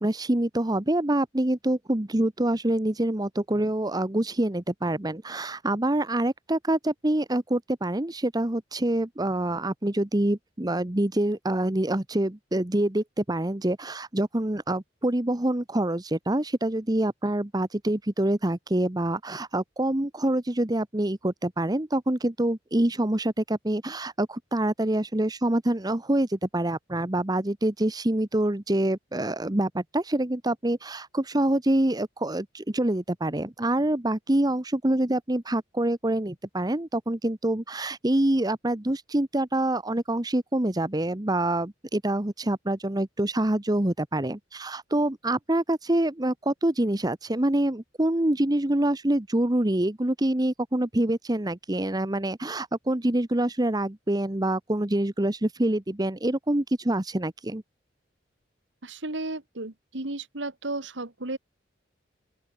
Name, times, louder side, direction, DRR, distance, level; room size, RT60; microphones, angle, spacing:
voice 1, 0.0-57.6, right 1 dB, 20° right, 1.1 m, -26 dB
voice 2, 58.8-61.4, right 2 dB, 75° right, 2.6 m, -34 dB
open air
head